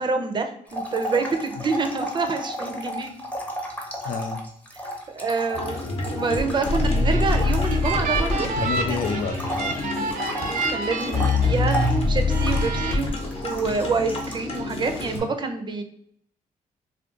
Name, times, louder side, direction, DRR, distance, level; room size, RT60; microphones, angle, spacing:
voice 1, 0.0-3.1 5.1-8.5 8.9-9.0 10.7-13.1 13.4-15.8, right 4 dB, 35° right, 6 dB, 0.4 m, -27 dB
sound 1, 0.7-8.6 8.9-14.6 14.9-15.2, equal, 10° left, 0.7 m, -34 dB
voice 2, 4.0-4.4 8.6-10.1, left 6 dB, 80° left, 8 dB, 0.4 m, -30 dB
sound 2, 5.5-15.2, left 2 dB, 45° left, 0.8 m, -25 dB
sound 3, 6.8-11.9 12.3-12.9, right 4 dB, 90° right, 0.5 m, -30 dB
2.4 x 2.2 x 3.7 m, 0.69 s
cardioid pair, 100°, 14 cm